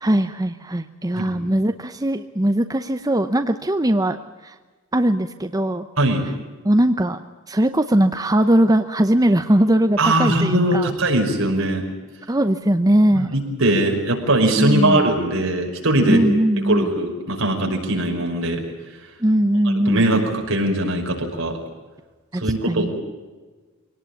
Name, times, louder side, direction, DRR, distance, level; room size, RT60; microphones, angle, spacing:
voice 1, 0.0-4.6 4.9-5.9 6.6-7.2 7.5-10.9 12.3-13.3 14.6-15.1 16.1-16.9 19.2-20.0 22.3-22.9, right 1 dB, 15° right, 8 dB, 0.7 m, -20 dB
voice 2, 10.0-11.8 13.2-16.2 16.7-18.6 19.7-21.6 22.3-22.9, right 1 dB, 65° right, 1 dB, 5.6 m, -20 dB
24.5 x 18.5 x 8.6 m, 1.3 s
head